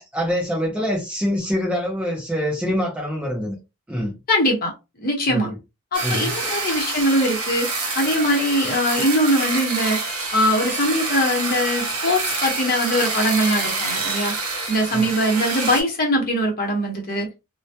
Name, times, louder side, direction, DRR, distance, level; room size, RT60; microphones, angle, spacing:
voice 1, 0.0-3.6 3.9-4.1 5.3-5.5 6.0-6.4 14.9-15.1, equal, 5° right, 0.4 m, -25 dB
voice 2, 4.3-4.7 5.0-5.5 5.9-7.7 7.9-10.0 10.3-14.3 14.7-17.3, equal, 45° left, 0.9 m, -21 dB
sound 1, 5.9-15.8, right 3 dB, 70° right, 0.8 m, -27 dB
2.1 x 2.1 x 2.7 m
head